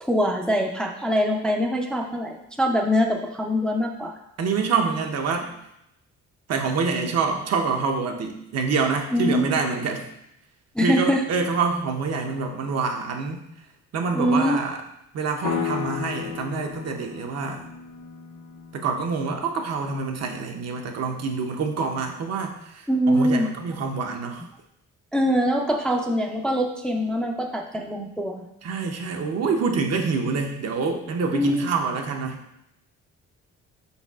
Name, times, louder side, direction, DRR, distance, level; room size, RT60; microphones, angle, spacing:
voice 1, 0.0-4.1 9.1-9.6 10.8-11.2 14.1-14.6 22.9-23.5 25.1-28.4 31.3-31.7, equal, 5° left, 1 dB, 0.4 m, -23 dB
voice 2, 4.4-5.5 6.5-10.0 10.8-13.4 13.9-14.8 15.1-17.6 18.7-24.5 28.6-32.4, right 4 dB, 55° right, 3 dB, 0.7 m, -26 dB
sound 1, 15.4-19.5, left 7 dB, 75° left, 0.7 m, -34 dB
4.6 x 4.2 x 2.3 m, 0.81 s
cardioid pair, 90°, 30 cm